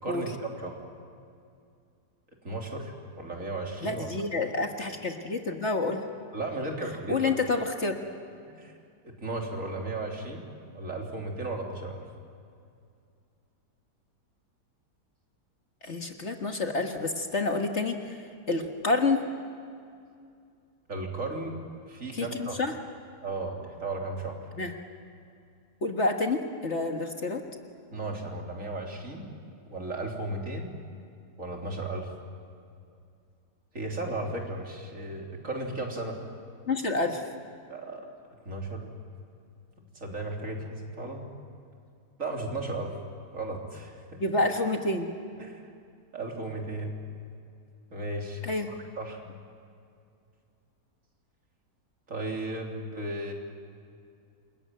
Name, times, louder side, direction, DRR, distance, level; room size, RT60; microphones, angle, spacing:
voice 1, 0.0-0.8 2.4-4.1 6.3-7.3 8.5-8.7 9.0-10.4 10.7-12.0 20.9-21.6 21.9-22.6 23.2-24.4 27.9-29.3 29.7-30.8 31.4-32.1 33.7-36.2 37.7-38.1 38.5-38.9 40.0-41.2 42.2-42.9 43.3-44.2 45.4-45.6 46.1-46.9 47.9-49.2 52.1-53.3, right 2 dB, 50° right, 0 dB, 3.7 m, -35 dB
voice 2, 3.8-6.0 7.1-8.0 15.8-18.2 18.5-19.2 22.1-22.7 24.6-24.7 25.8-27.4 36.7-37.2 44.2-45.1 48.4-48.7, left 3 dB, 45° left, 4 dB, 1.8 m, -28 dB
28.5 x 21.5 x 9.3 m, 2.4 s
omnidirectional pair, 1.7 m